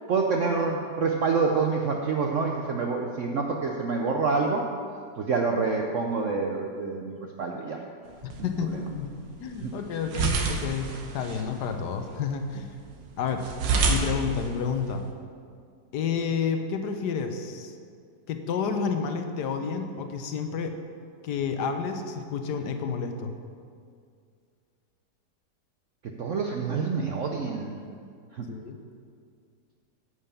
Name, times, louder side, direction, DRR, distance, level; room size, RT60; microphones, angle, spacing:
voice 1, 0.1-4.6 5.2-7.8 8.4-8.8 9.6-9.7 26.2-27.8 28.3-28.5, right 4 dB, 65° right, 1 dB, 0.8 m, -27 dB
sound 1, 8.1-15.1, right 4 dB, 90° right, 1.7 m, -31 dB
voice 2, 8.2-9.1 9.4-10.9 11.1-12.7 13.2-13.4 13.9-15.1 15.9-17.8 18.3-20.7 21.2-23.3 28.5-28.8, left 6 dB, 70° left, 7 dB, 1.3 m, -30 dB
9.7 x 5.7 x 7.0 m, 2.2 s
omnidirectional pair, 1.9 m